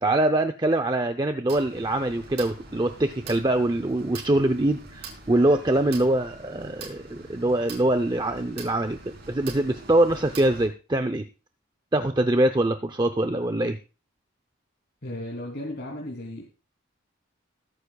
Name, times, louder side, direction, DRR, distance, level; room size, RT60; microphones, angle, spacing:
voice 1, 0.0-11.3 11.9-13.8, right 1 dB, 20° right, 8 dB, 0.6 m, -24 dB
sound 1, 1.5-10.7, right 3 dB, 55° right, 3.9 m, -44 dB
voice 2, 15.0-16.4, left 1 dB, 55° left, -2 dB, 3.0 m, -35 dB
20.0 x 9.9 x 2.3 m, 0.32 s
head